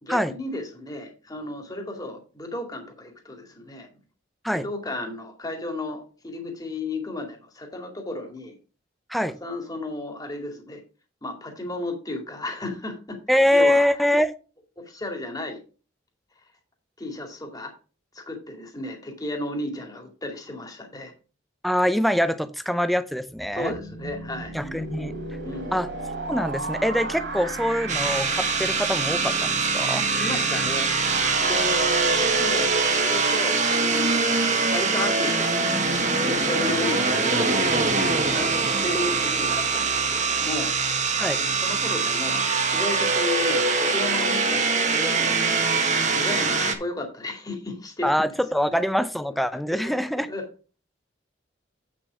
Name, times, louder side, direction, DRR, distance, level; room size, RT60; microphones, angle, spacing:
voice 1, 0.0-3.9 4.5-8.5 9.4-10.8 11.2-13.2 13.5-13.8 14.8-15.6 17.0-17.7 18.1-21.1 23.5-24.5 25.4-25.8 30.2-30.9 31.4-32.7 33.0-40.7 41.3-45.7 46.1-48.3 49.8-49.9 50.3-50.5, left 2 dB, 20° left, 3 dB, 2.2 m, -34 dB
voice 2, 13.3-14.3 21.6-23.7 24.5-25.1 25.7-25.9 26.3-30.1 41.2-41.4 48.0-50.3, equal, ahead, 12 dB, 0.5 m, -24 dB
sound 1, 23.4-35.1, right 3 dB, 65° right, 3.2 m, -34 dB
sound 2, 27.9-46.8, right 4 dB, 40° right, 1.3 m, -23 dB
8.4 x 6.2 x 4.8 m, 0.36 s
head